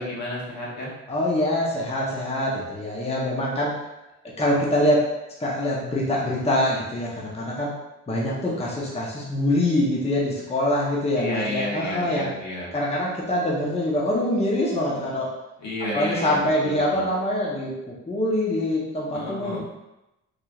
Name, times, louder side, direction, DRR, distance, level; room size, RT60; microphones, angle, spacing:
voice 1, 0.0-0.9 11.1-12.7 15.6-17.1 19.1-19.6, left 1 dB, 65° left, -5 dB, 1.5 m, -31 dB
voice 2, 1.1-3.7 4.4-5.0 5.4-7.7 8.1-12.3 12.7-15.3 15.9-19.6, left 1 dB, 20° left, -5 dB, 0.9 m, -24 dB
4.4 x 3.3 x 2.4 m, 0.95 s
cardioid pair, 90°, 30 cm